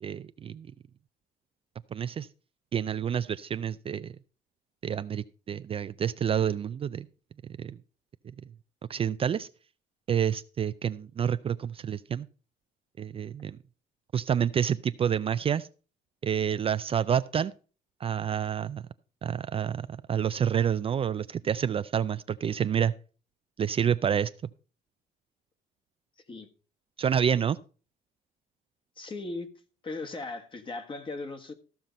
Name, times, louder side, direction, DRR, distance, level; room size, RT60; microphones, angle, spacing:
voice 1, 0.0-0.7 1.9-2.3 2.7-4.1 4.8-7.1 7.6-7.8 8.9-9.5 10.1-12.3 13.0-13.6 14.1-15.7 16.2-17.5 18.0-18.8 19.2-22.9 23.6-24.3 27.0-27.6, right 8 dB, 35° right, 0.4 m, -28 dB
voice 2, 29.0-29.5 29.8-31.5, left 3 dB, 30° left, 1.5 m, -37 dB
14.5 x 5.9 x 5.2 m
cardioid pair, 110°, 17 cm